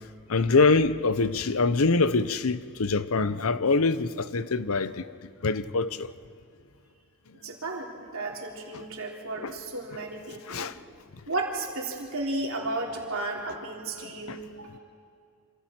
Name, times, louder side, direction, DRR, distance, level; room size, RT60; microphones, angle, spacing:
voice 1, 0.3-5.1 5.4-6.1 8.7-8.8 9.4-9.5 10.5-10.8 14.0-14.4, left 3 dB, 75° left, 0.8 m, -25 dB
voice 2, 7.3-10.7 11.3-14.8, right 2 dB, 70° right, 3.4 m, -34 dB
27.0 x 26.5 x 4.5 m
head